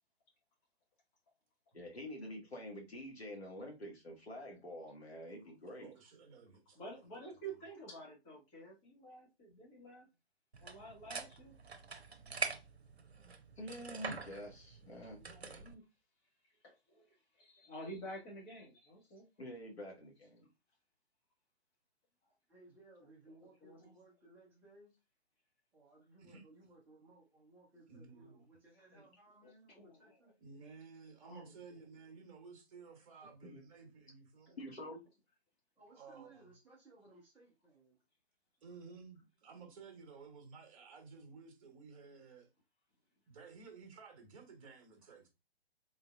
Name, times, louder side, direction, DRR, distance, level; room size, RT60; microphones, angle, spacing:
voice 1, 1.7-5.9 13.6-15.2 19.4-20.5 33.4-33.6 34.6-35.0, equal, 75° left, 1.9 m, -47 dB
voice 2, 5.8-7.1 7.5-7.6 12.1-12.6 26.2-26.4 27.9-28.4 30.4-34.6 35.9-36.5 38.6-42.5 43.3-45.3, right 5 dB, 30° right, 1.3 m, -55 dB
voice 3, 6.7-10.1 10.6-11.5 15.2-15.8 16.6-19.3 23.0-24.0 28.9-29.1 29.4-30.2 31.2-31.5 34.5-34.6, right 2 dB, 20° left, 1.4 m, -51 dB
sound 1, 10.5-15.7, right 4 dB, 75° right, 0.7 m, -44 dB
voice 4, 22.5-24.9 25.7-30.3 35.8-38.0, right 2 dB, 5° right, 0.5 m, -62 dB
3.9 x 3.8 x 2.4 m
figure-of-eight pair, 130°, 32 cm